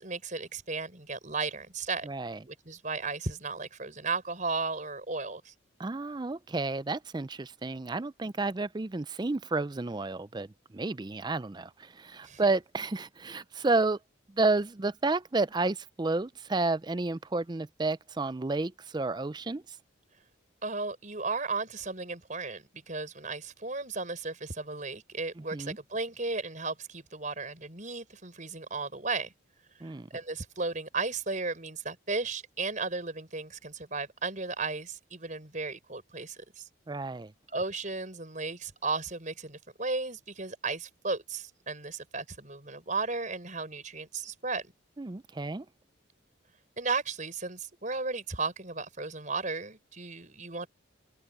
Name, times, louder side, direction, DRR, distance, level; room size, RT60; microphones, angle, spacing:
voice 1, 0.0-2.1 2.5-5.5 12.2-12.4 20.6-29.3 29.8-36.7 37.5-44.7 46.8-50.7, right 3 dB, 40° right, 5.1 m, -35 dB
voice 2, 2.1-2.4 5.8-10.5 10.7-14.0 14.3-19.6 25.5-25.8 29.8-30.1 36.9-37.3 45.0-45.7, right 3 dB, 20° right, 0.4 m, -31 dB
head